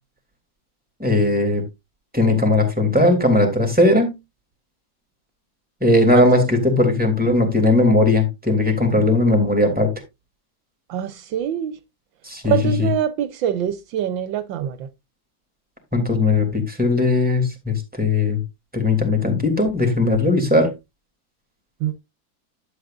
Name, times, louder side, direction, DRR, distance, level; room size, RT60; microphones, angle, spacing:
voice 1, 1.0-1.6 2.1-4.1 5.8-9.9 12.2-12.9 15.9-18.4 18.7-20.7, left 2 dB, 5° right, 3.0 m, -18 dB
voice 2, 6.1-6.4 10.9-11.8 12.4-14.8 21.8-21.9, right 10 dB, 80° right, 1.5 m, -24 dB
11.5 x 8.2 x 2.5 m
omnidirectional pair, 2.1 m